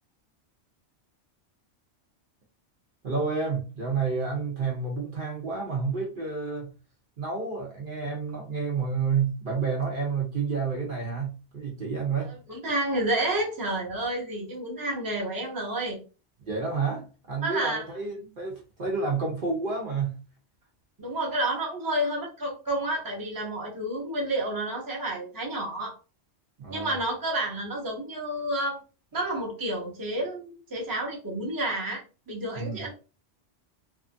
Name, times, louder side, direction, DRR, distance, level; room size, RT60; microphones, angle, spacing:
voice 1, 3.0-6.7 7.2-12.3 16.4-20.2 26.6-26.9 32.6-32.8, right 5 dB, 55° right, -1 dB, 0.8 m, -30 dB
voice 2, 12.2-16.0 17.4-17.8 21.0-25.9 26.7-28.8 29.1-32.9, right 1 dB, 20° right, -2 dB, 0.7 m, -30 dB
2.8 x 2.4 x 2.5 m, 0.34 s
omnidirectional pair, 1.2 m